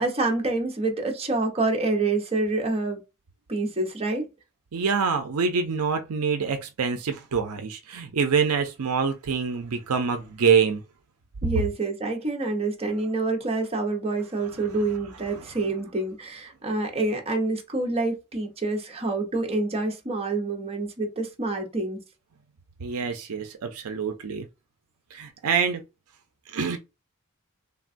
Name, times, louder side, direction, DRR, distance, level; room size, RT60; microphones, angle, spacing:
voice 1, 0.0-3.0 3.5-4.3 11.4-22.0, right 2 dB, 25° right, 0.8 m, -27 dB
voice 2, 4.7-10.8 22.8-24.5 25.1-25.8 26.5-26.8, right 6 dB, 75° right, 0.5 m, -25 dB
3.4 x 2.2 x 2.5 m
head